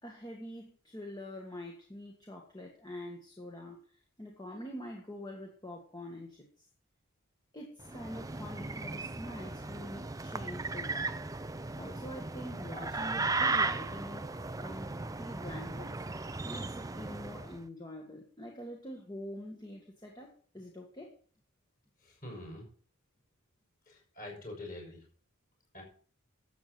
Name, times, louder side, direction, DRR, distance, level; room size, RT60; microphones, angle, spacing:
voice 1, 0.0-6.7 7.5-11.2 11.8-14.3 14.6-15.9 16.4-21.1, left 1 dB, 20° left, 1 dB, 1.6 m, -45 dB
sound 1, 7.8-17.6, right 3 dB, 15° right, 0.4 m, -36 dB
voice 2, 22.0-22.7 23.9-25.0 25.7-25.8, left 1 dB, 35° left, 0 dB, 6.4 m, -45 dB
12.0 x 8.2 x 6.0 m, 0.43 s
head